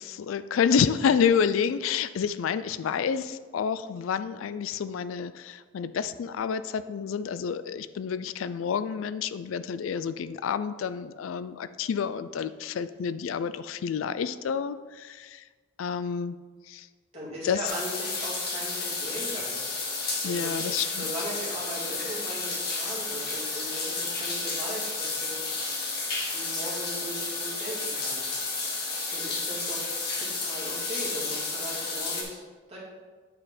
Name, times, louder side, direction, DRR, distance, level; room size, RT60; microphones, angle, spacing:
voice 1, 0.0-15.4 15.8-16.4 16.7-16.9 17.4-17.6 20.2-21.1, left 7 dB, 90° left, 14 dB, 0.3 m, -29 dB
voice 2, 17.1-19.8 20.2-25.4 26.3-28.3 29.1-29.8 30.1-32.4 32.7-32.8, right 1 dB, 30° right, -6 dB, 2.3 m, -38 dB
sound 1, 17.7-32.2, left 3 dB, 50° left, 1.4 m, -32 dB
8.3 x 4.2 x 5.1 m, 1.4 s
head